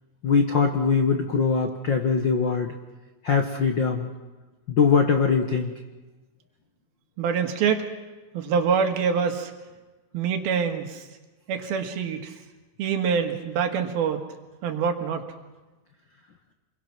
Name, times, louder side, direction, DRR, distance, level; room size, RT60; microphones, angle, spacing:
voice 1, 0.2-2.7 3.2-4.1 4.7-5.7, left 5 dB, 85° left, 5 dB, 1.0 m, -22 dB
voice 2, 7.2-7.8 8.3-9.5 10.1-11.0 11.5-12.3 12.8-14.2 14.6-15.3, right 6 dB, 90° right, 6 dB, 3.6 m, -25 dB
27.5 x 22.0 x 6.0 m, 1.2 s
omnidirectional pair, 4.2 m